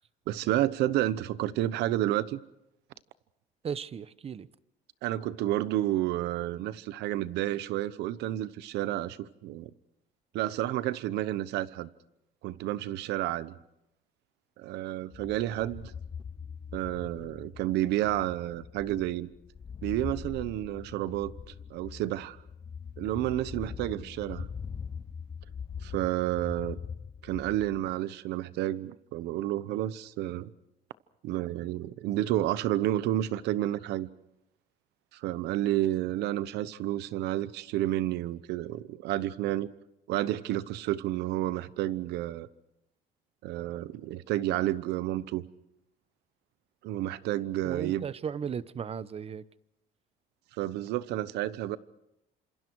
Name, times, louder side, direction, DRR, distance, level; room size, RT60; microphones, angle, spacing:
voice 1, 0.3-2.4 5.0-9.7 10.3-11.9 12.4-13.5 14.6-15.9 16.7-19.3 19.8-21.3 21.7-22.4 23.0-24.5 25.8-26.8 27.2-30.5 31.2-34.1 35.1-39.7 40.1-42.5 43.4-45.4 46.8-48.1 50.6-51.8, right 14 dB, 85° right, 1.0 m, -30 dB
voice 2, 3.6-4.5 47.6-49.4, right 7 dB, 35° right, 0.9 m, -36 dB
sound 1, 15.1-28.0, left 6 dB, 25° left, 0.7 m, -42 dB
28.0 x 27.0 x 4.7 m
cardioid pair, 110°, 17 cm